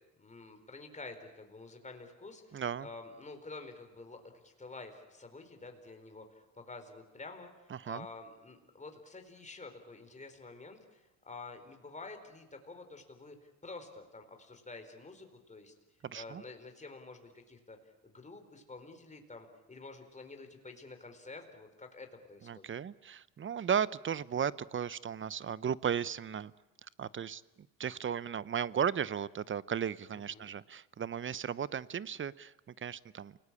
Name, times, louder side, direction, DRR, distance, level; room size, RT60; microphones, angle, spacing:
voice 1, 0.2-15.7 16.1-17.8 18.0-22.7 30.3-30.5, left 3 dB, 20° left, 5 dB, 4.4 m, -49 dB
voice 2, 2.5-2.9 7.7-8.1 16.0-16.4 22.4-26.5 27.0-33.4, right 8 dB, 30° right, 19 dB, 0.8 m, -35 dB
28.5 x 19.0 x 8.7 m, 1.1 s
supercardioid pair, 75°, 39 cm